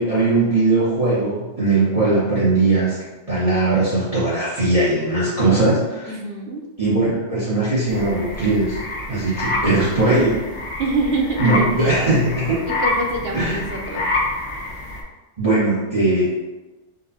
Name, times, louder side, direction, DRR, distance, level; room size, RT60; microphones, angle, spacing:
voice 1, 0.0-3.0 3.3-6.1 6.8-8.8 9.1-10.4 11.4-12.7 13.3-13.6 15.4-16.3, right 2 dB, 30° right, -11 dB, 1.2 m, -19 dB
voice 2, 6.0-6.7 9.4-10.2 10.8-12.0 12.8-14.1, right 2 dB, 55° right, 0 dB, 0.8 m, -26 dB
sound 1, 7.9-15.0, left 2 dB, 65° left, 1.2 m, -27 dB
5.2 x 2.3 x 4.1 m, 1.1 s
omnidirectional pair, 1.3 m